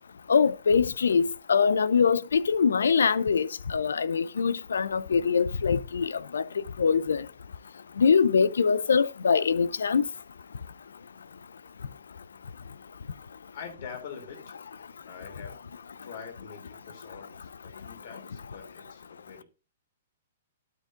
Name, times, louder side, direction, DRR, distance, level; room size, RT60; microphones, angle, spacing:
voice 1, 0.3-6.4 6.8-7.2 8.0-10.0, left 6 dB, 75° left, 0.5 m, -23 dB
voice 2, 13.5-14.6 15.1-15.6 16.0-19.4, left 6 dB, 60° left, 3.1 m, -44 dB
12.0 x 6.6 x 2.6 m
hypercardioid pair, 120°, 0 cm